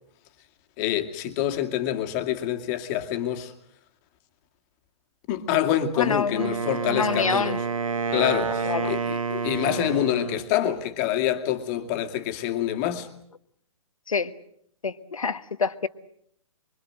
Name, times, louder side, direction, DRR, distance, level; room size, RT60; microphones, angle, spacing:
voice 1, 0.8-3.5 5.3-7.6 8.1-13.1, left 11 dB, 30° left, 2.3 m, -26 dB
voice 2, 6.0-7.6 8.6-9.0 14.1-14.3 14.8-15.9, left 5 dB, 70° left, 1.4 m, -27 dB
Wind instrument woodwind instrument, 6.4-10.5, right 5 dB, 70° right, 1.2 m, -29 dB
25.0 x 24.0 x 7.7 m
figure-of-eight pair, 125°, 18 cm